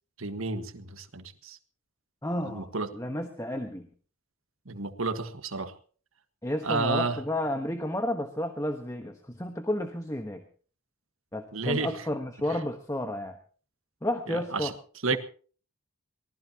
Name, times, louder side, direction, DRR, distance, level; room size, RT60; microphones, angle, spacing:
voice 1, 0.2-1.6 2.4-2.9 4.6-5.7 6.6-7.2 11.5-11.9 12.5-12.6 14.3-14.7 15.0-15.2, right 3 dB, 75° right, 9 dB, 1.6 m, -31 dB
voice 2, 2.2-3.9 6.4-10.4 11.3-13.4 14.0-14.7 15.1-15.2, left 1 dB, 15° left, 5 dB, 1.3 m, -32 dB
24.0 x 18.5 x 3.0 m, 0.41 s
head